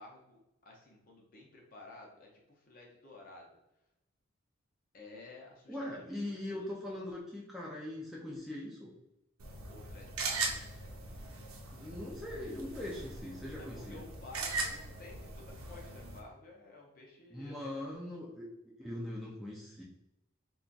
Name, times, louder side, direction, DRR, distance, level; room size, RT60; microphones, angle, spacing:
voice 1, 0.0-3.5 4.9-6.7 9.7-10.6 13.6-17.7, left 2 dB, 40° left, -1 dB, 0.7 m, -53 dB
voice 2, 5.7-8.9 11.7-14.0 17.3-19.8, left 1 dB, ahead, -5 dB, 0.4 m, -41 dB
sound 1, 9.4-16.2, right 3 dB, 90° right, 0.6 m, -40 dB
2.4 x 2.3 x 3.8 m, 0.87 s
head